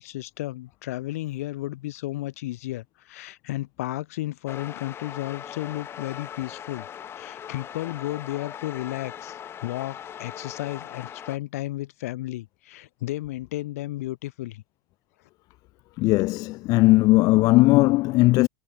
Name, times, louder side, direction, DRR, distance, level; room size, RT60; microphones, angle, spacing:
voice 1, 0.0-6.9 7.1-14.6, left 16 dB, 75° left, 2.7 m, -33 dB
sound 1, 4.5-11.4, left 9 dB, 30° left, 1.0 m, -40 dB
voice 2, 16.0-18.5, left 20 dB, 50° left, 0.5 m, -18 dB
hypercardioid pair, 105°, 8 cm